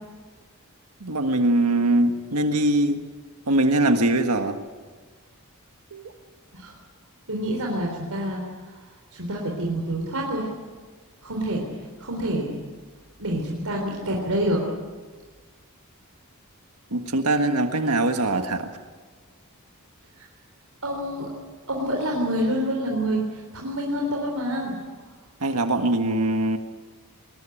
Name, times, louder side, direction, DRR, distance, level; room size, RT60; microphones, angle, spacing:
voice 1, 1.0-3.0 3.5-4.6 5.9-6.0 16.9-18.7 25.4-26.6, right 2 dB, 90° right, 6 dB, 1.6 m, -22 dB
voice 2, 7.3-8.4 9.1-10.5 11.2-11.7 12.0-12.6 13.2-14.6 20.2-20.3 20.8-21.3 21.7-24.7, equal, 75° right, -1 dB, 3.9 m, -27 dB
21.5 x 20.0 x 8.9 m, 1.4 s
head